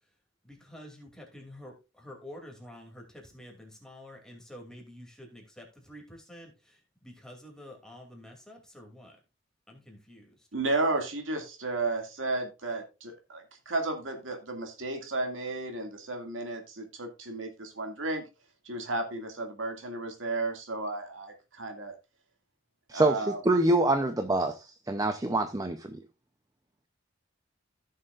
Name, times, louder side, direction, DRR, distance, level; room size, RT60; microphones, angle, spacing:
voice 1, 0.4-9.2 9.7-10.4, left 1 dB, 5° left, 2.6 m, -48 dB
voice 2, 10.5-18.2 18.6-21.9 22.9-23.4, right 2 dB, 80° right, 2.2 m, -33 dB
voice 3, 22.9-26.0, right 2 dB, 20° right, 0.6 m, -26 dB
15.0 x 6.6 x 2.4 m
head